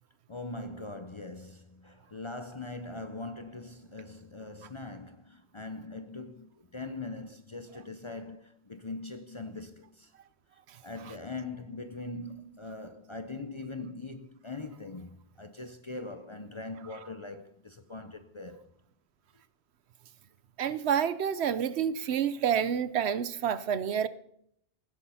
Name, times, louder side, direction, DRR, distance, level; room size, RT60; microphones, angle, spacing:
voice 1, 0.3-10.1 10.8-18.7, left 3 dB, 35° left, 0.6 m, -41 dB
voice 2, 20.6-24.1, right 8 dB, 70° right, 0.9 m, -28 dB
15.5 x 10.5 x 5.5 m
omnidirectional pair, 1.2 m